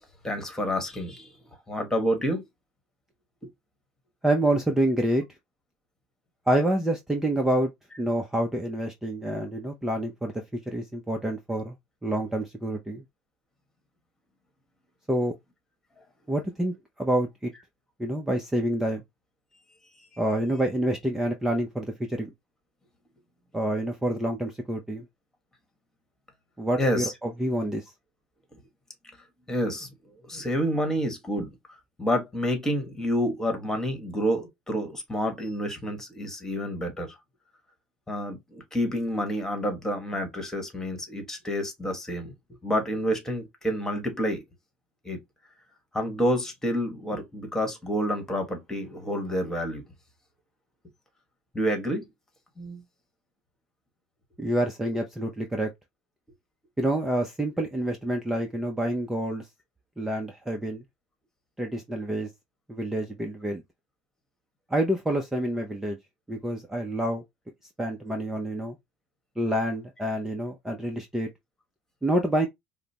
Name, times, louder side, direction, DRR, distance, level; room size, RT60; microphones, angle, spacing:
voice 1, 0.2-1.3 1.7-2.4 20.1-20.2 26.8-27.1 29.5-29.9 30.2-31.5 32.0-37.1 38.1-42.3 42.6-44.4 45.0-45.2 45.9-49.8 51.5-52.1 52.6-52.8, equal, 15° left, 1.4 m, -28 dB
voice 2, 4.2-5.2 6.5-7.7 8.0-11.7 12.0-13.0 15.1-15.3 16.3-17.5 18.0-19.0 20.2-22.3 23.5-25.0 26.6-27.9 54.4-55.7 56.8-59.5 60.0-60.8 61.6-62.3 62.7-63.6 64.7-66.0 66.3-67.2 67.8-68.8 69.4-71.3 72.0-72.5, right 1 dB, 10° right, 0.6 m, -27 dB
4.8 x 2.1 x 2.8 m
supercardioid pair, 95°, 3 cm